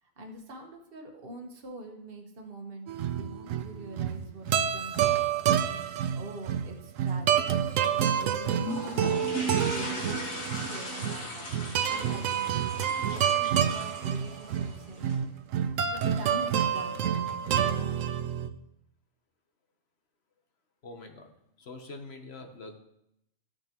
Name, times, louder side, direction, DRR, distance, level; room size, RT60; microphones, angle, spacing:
voice 1, 0.0-5.0 6.1-7.4 7.9-11.5 11.9-12.6 12.9-15.1 15.8-17.0 17.4-18.0, right 1 dB, 45° right, 2 dB, 1.4 m, -44 dB
sound 1, 2.9-18.5, right 9 dB, 75° right, 1.0 m, -28 dB
sound 2, 8.6-15.2, equal, 90° left, 2.2 m, -38 dB
voice 2, 20.8-21.3 21.6-22.8, left 2 dB, 55° left, 5 dB, 1.3 m, -44 dB
14.5 x 6.4 x 3.0 m, 0.80 s
omnidirectional pair, 1.4 m